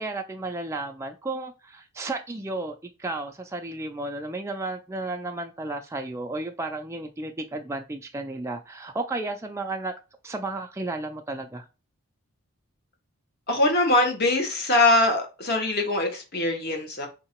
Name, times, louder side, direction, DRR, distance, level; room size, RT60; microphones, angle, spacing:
voice 1, 0.0-9.9 10.2-11.7, right 2 dB, 10° right, 0.3 m, -33 dB
voice 2, 13.5-17.1, left 2 dB, 45° left, 1.1 m, -22 dB
3.6 x 2.8 x 4.4 m
head